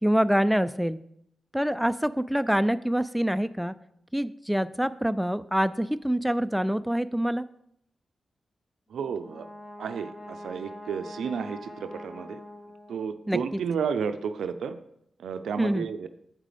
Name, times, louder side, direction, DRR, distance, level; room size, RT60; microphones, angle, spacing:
voice 1, 0.0-1.0 1.5-3.7 4.1-7.4 13.3-13.4 15.6-15.9, equal, ahead, 12 dB, 0.4 m, -25 dB
Brass instrument, 8.9-13.3, left 1 dB, 55° left, 1.9 m, -44 dB
voice 2, 8.9-9.5 9.8-12.4 12.9-14.8 15.2-16.1, right 6 dB, 80° right, 10 dB, 0.5 m, -32 dB
7.4 x 5.1 x 5.0 m, 0.74 s
supercardioid pair, 40°, 0 cm